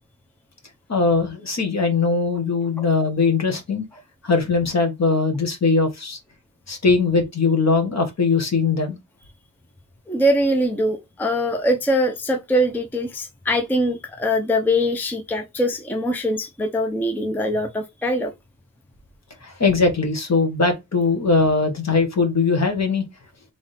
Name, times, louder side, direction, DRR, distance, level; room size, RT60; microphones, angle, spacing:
voice 1, 0.9-3.8 4.2-6.2 6.7-9.0 19.4-23.1, left 4 dB, 50° left, 1.4 m, -20 dB
voice 2, 10.1-18.3, equal, 5° left, 0.5 m, -22 dB
3.6 x 3.4 x 4.1 m
wide cardioid pair, 165°, 35 cm